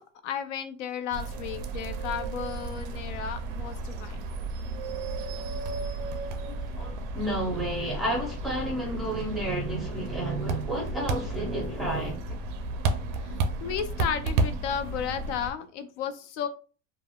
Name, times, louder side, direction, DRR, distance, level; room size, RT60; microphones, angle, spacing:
voice 1, 0.0-4.2 13.2-13.3 13.6-16.5, left 8 dB, 70° left, 0.5 m, -33 dB
sound 1, 1.1-15.5, right 3 dB, 45° right, 0.4 m, -33 dB
voice 2, 6.5-12.2, right 1 dB, ahead, 0.7 m, -31 dB
3.3 x 2.1 x 2.2 m
supercardioid pair, 155°, 37 cm